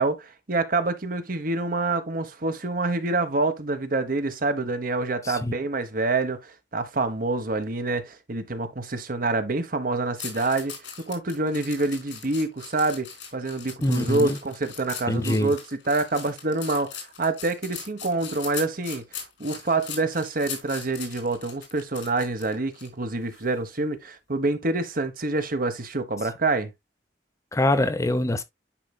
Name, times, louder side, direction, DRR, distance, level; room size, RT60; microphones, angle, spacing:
voice 1, 0.0-26.7, right 3 dB, 55° right, 1.2 m, -27 dB
sound 1, 10.2-22.9 23.3-23.5, left 7 dB, 80° left, 3.3 m, -40 dB
voice 2, 13.8-14.4 15.1-15.5 27.5-28.4, left 1 dB, 20° left, 0.7 m, -24 dB
10.0 x 4.9 x 2.3 m
head